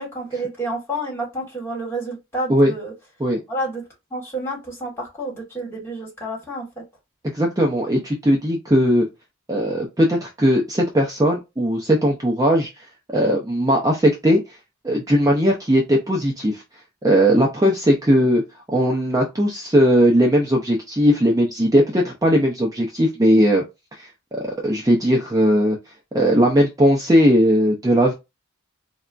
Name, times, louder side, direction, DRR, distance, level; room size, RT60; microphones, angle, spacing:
voice 1, 0.0-2.9 3.5-3.8 4.1-6.7, right 1 dB, 10° left, -3 dB, 1.5 m, -29 dB
voice 2, 7.3-9.1 9.5-12.7 13.1-14.4 14.8-16.6 17.0-18.4 18.7-23.6 23.9-25.8 26.1-28.1, equal, 15° right, -1 dB, 0.5 m, -18 dB
4.0 x 2.2 x 2.4 m, 0.23 s
head